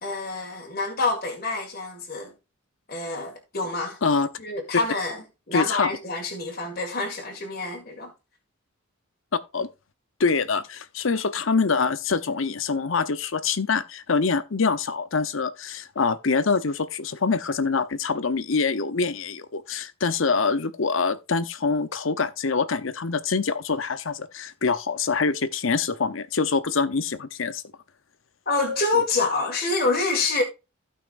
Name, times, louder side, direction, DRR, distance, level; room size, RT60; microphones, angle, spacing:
voice 1, 0.0-2.3 2.9-4.0 4.4-8.1 28.5-30.4, left 3 dB, 45° left, 1.9 m, -27 dB
voice 2, 5.5-5.9 9.5-9.7 10.2-27.6, left 4 dB, 70° left, 0.8 m, -25 dB
15.5 x 5.7 x 2.5 m
head